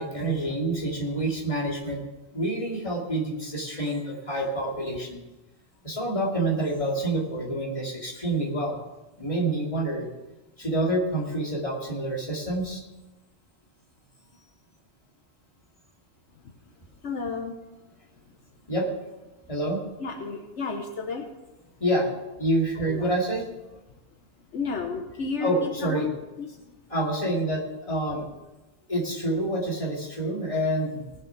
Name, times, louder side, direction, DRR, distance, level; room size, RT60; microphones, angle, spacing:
voice 1, 0.0-2.0 2.3-5.2 5.8-8.8 9.2-10.1 10.6-12.8 18.7-18.9 19.5-19.8 21.8-22.1 22.4-23.4 25.4-26.1 26.9-28.2 28.9-31.1, right 1 dB, 30° left, -3 dB, 2.7 m, -27 dB
voice 2, 17.0-17.6 20.0-21.3 22.8-23.1 24.5-26.1 26.4-26.7, left 4 dB, 75° left, 3 dB, 1.3 m, -32 dB
19.0 x 6.7 x 5.9 m, 1.1 s
omnidirectional pair, 1.2 m